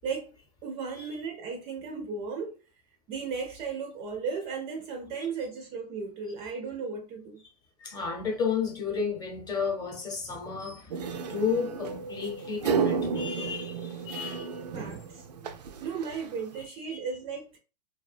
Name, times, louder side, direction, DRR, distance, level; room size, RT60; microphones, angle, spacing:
voice 1, 0.6-2.6 3.1-7.4 14.7-15.3 15.8-17.6, right 5 dB, 30° right, 0.4 m, -35 dB
voice 2, 7.8-14.6 16.8-17.0, left 6 dB, 20° left, 0.8 m, -32 dB
sound 1, 10.9-16.6, right 5 dB, 90° right, 0.4 m, -32 dB
2.4 x 2.2 x 2.4 m
hypercardioid pair, 125°, 20 cm